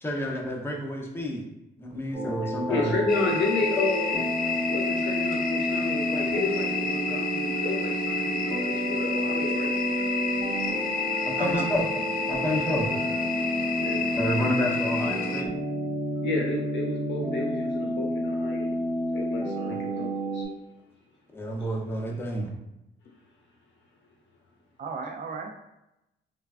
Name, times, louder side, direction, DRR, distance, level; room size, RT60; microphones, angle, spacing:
voice 1, 0.0-1.4 1.8-2.9 11.2-11.8 12.3-12.9 14.1-15.5 19.7-19.8 21.3-22.5, equal, 10° left, -1 dB, 0.7 m, -29 dB
sound 1, 2.1-20.4, equal, 5° right, 1.3 m, -30 dB
voice 2, 2.7-4.3 4.7-9.7 13.8-14.1 16.2-18.8 19.1-20.4, left 3 dB, 65° left, -1 dB, 0.8 m, -31 dB
sound 2, 3.1-15.4, left 5 dB, 45° left, 0.4 m, -31 dB
voice 3, 11.4-11.7 12.3-12.5 24.8-25.5, right 4 dB, 40° right, 4 dB, 0.4 m, -34 dB
3.3 x 2.2 x 2.4 m, 0.89 s
cardioid pair, 90°, 20 cm